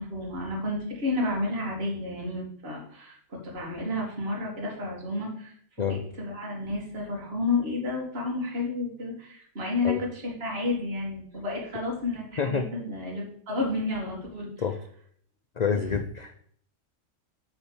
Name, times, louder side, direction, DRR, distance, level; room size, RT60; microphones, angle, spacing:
voice 1, 0.0-14.5, left 2 dB, 50° right, -2 dB, 2.3 m, -31 dB
voice 2, 12.4-12.7 14.6-14.8 15.6-16.5, left 6 dB, 50° left, 7 dB, 0.5 m, -28 dB
8.9 x 4.2 x 7.0 m, 0.63 s
omnidirectional pair, 1.4 m